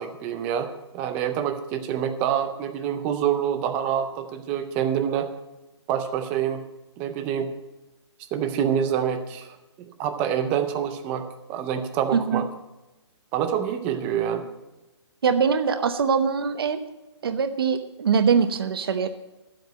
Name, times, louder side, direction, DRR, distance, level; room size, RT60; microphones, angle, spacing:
voice 1, 0.0-5.3 5.9-6.6 7.0-7.5 8.3-12.5 13.3-14.5, right 9 dB, 10° right, 8 dB, 0.4 m, -26 dB
voice 2, 12.1-12.4 15.2-16.8 17.2-19.1, right 6 dB, 55° right, 9 dB, 0.9 m, -22 dB
11.0 x 7.9 x 7.9 m, 1.0 s
hypercardioid pair, 170°, 15 cm